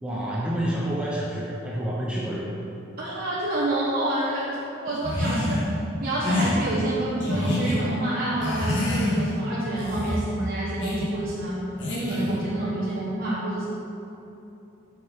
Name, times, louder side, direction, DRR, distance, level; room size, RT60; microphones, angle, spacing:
voice 1, 0.0-2.5, right 1 dB, 5° right, -5 dB, 0.7 m, -28 dB
voice 2, 3.0-4.5 4.8-5.6 6.0-11.6 11.9-13.7, right 1 dB, 50° right, -8 dB, 1.2 m, -28 dB
sound 1, 5.0-5.7 6.2-6.5 7.2-7.8 8.4-9.4 9.8-10.2 10.8-11.1 11.8-12.4, left 1 dB, 65° left, 1.9 m, -26 dB
9.2 x 5.7 x 4.4 m, 2.9 s
head